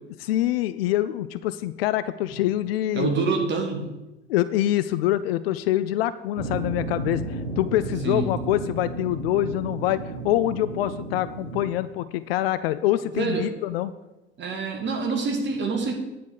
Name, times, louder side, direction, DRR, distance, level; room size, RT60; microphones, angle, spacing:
voice 1, 0.2-3.1 4.3-13.9, left 14 dB, 55° left, 14 dB, 0.5 m, -25 dB
voice 2, 2.9-3.9 8.0-8.3 13.0-13.5 14.4-15.9, right 4 dB, 30° right, 3 dB, 1.7 m, -26 dB
sound 1, 6.4-11.7, right 3 dB, 85° right, 1.1 m, -33 dB
9.3 x 4.2 x 6.7 m, 1.0 s
figure-of-eight pair, 70°, 36 cm